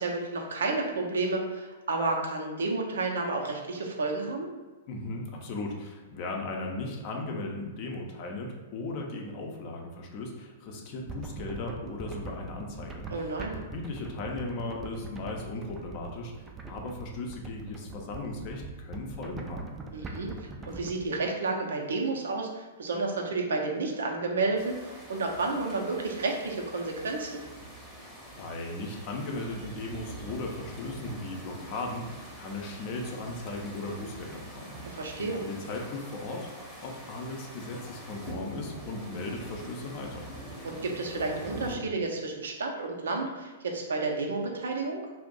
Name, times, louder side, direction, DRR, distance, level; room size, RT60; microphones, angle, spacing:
voice 1, 0.0-4.5 13.1-13.6 19.9-27.4 34.8-35.4 40.6-45.0, right 3 dB, 70° right, 1 dB, 0.6 m, -31 dB
voice 2, 4.9-13.1 13.7-16.3 16.7-19.7 28.0-40.3, left 2 dB, 45° left, 1 dB, 0.6 m, -37 dB
sound 1, 11.1-21.2, right 3 dB, 15° right, 0.3 m, -42 dB
sound 2, 24.6-41.8, right 1 dB, ahead, 0.8 m, -44 dB
2.5 x 2.1 x 3.9 m, 1.2 s
figure-of-eight pair, 110°, 0 cm